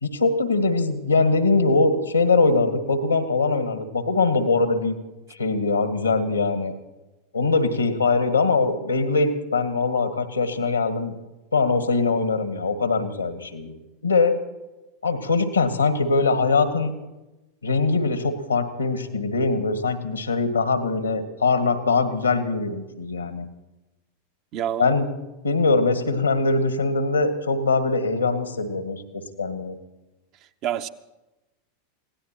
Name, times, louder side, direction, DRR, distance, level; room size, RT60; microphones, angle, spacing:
voice 1, 0.0-5.0 5.3-6.7 7.3-11.1 11.5-14.3 15.0-16.9 17.6-23.5 24.8-25.1 25.4-29.0 29.4-29.7, left 3 dB, 85° left, 1.5 m, -22 dB
voice 2, 24.5-24.9 30.6-30.9, right 10 dB, 45° right, 0.7 m, -27 dB
26.0 x 17.5 x 3.0 m
figure-of-eight pair, 90°, 0 cm